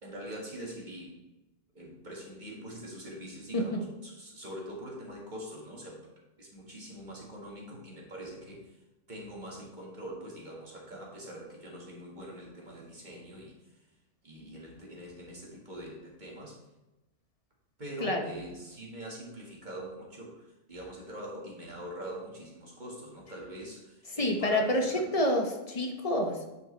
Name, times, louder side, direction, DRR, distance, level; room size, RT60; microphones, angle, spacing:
voice 1, 0.0-1.2 1.7-6.0 6.4-8.7 9.1-13.8 14.2-16.6 17.8-25.1, right 1 dB, 35° right, -3 dB, 1.8 m, -43 dB
voice 2, 24.2-26.5, left 1 dB, 30° left, 3 dB, 0.8 m, -28 dB
9.4 x 5.0 x 3.2 m, 1.0 s
omnidirectional pair, 1.4 m